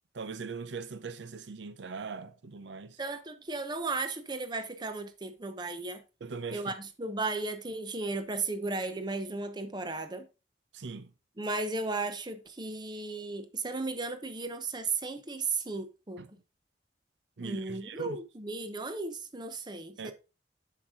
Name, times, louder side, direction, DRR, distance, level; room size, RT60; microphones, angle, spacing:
voice 1, 0.1-3.0 6.2-6.7 10.7-11.1 16.2-16.3 17.4-18.2 20.0-20.1, right 5 dB, 90° right, 0.6 m, -40 dB
voice 2, 3.0-6.0 6.5-10.3 11.4-16.4 17.4-20.1, right 3 dB, 25° right, 0.9 m, -35 dB
7.2 x 6.6 x 3.7 m
head